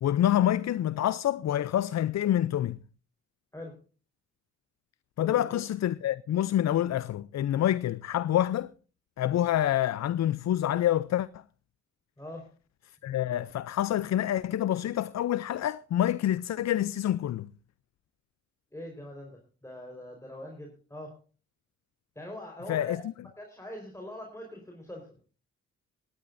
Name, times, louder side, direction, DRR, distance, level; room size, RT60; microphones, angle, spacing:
voice 1, 0.0-2.8 5.2-8.7 9.2-11.4 13.0-17.5 22.7-23.0, left 12 dB, 60° left, 0.5 m, -27 dB
voice 2, 5.2-5.6 12.2-12.5 18.7-21.2 22.1-23.0 23.4-25.3, left 1 dB, 10° left, 4.5 m, -43 dB
18.0 x 12.0 x 2.6 m
supercardioid pair, 55°, 32 cm